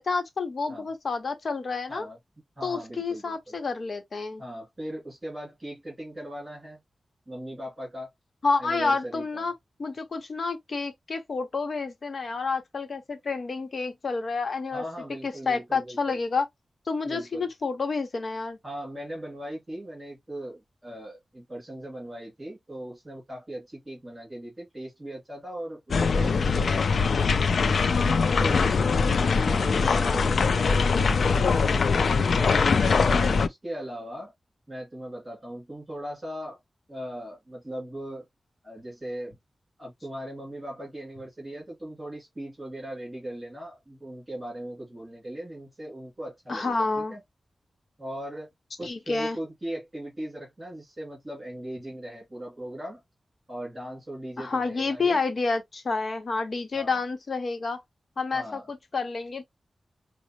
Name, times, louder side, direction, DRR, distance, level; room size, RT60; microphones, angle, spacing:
voice 1, 0.0-2.1 2.6-4.4 8.4-9.5 9.8-14.8 15.2-16.4 16.9-18.6 29.5-30.3 46.5-47.2 48.8-49.4 54.4-57.8 58.2-59.4, left 4 dB, 50° left, 0.8 m, -29 dB
voice 2, 2.6-3.6 4.4-6.8 7.3-8.1 8.6-9.5 14.7-16.2 17.0-17.5 18.6-28.0 28.4-31.8 32.2-32.6 32.9-34.3 34.7-36.6 36.9-38.2 38.6-39.4 39.8-47.2 48.0-48.5 48.8-53.0 53.5-55.2 56.7-57.0 58.3-58.7, right 1 dB, 20° right, 2.3 m, -39 dB
sound 1, 25.9-33.5, left 5 dB, 70° left, 0.3 m, -22 dB
4.8 x 2.0 x 2.8 m
wide cardioid pair, 135°, 0 cm